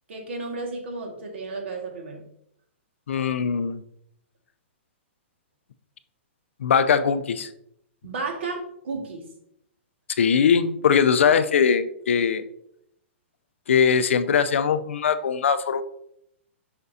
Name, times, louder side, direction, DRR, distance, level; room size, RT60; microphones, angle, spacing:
voice 1, 0.1-2.2 8.0-9.3, right 3 dB, 70° right, 2 dB, 1.8 m, -33 dB
voice 2, 3.1-3.8 6.6-7.5 10.2-12.4 13.7-15.8, left 7 dB, 75° left, 12 dB, 0.5 m, -21 dB
6.6 x 5.9 x 2.7 m, 0.74 s
hypercardioid pair, 165°, 7 cm